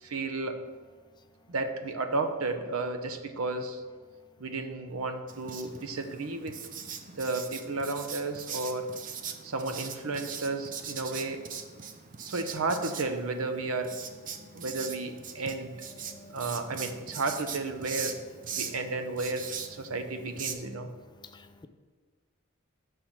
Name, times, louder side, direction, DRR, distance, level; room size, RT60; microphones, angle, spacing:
voice 1, 0.0-0.6 1.5-3.8 4.4-6.5 7.2-8.9 9.4-11.4 12.2-13.9 14.5-15.7 16.3-18.2 18.5-20.9, right 3 dB, 85° right, 6 dB, 0.7 m, -33 dB
Writing, 5.3-20.5, right 7 dB, 40° right, 0.5 m, -41 dB
voice 2, 16.0-16.7 21.3-21.7, left 2 dB, 20° left, 9 dB, 0.3 m, -51 dB
6.6 x 4.5 x 5.8 m, 1.5 s
head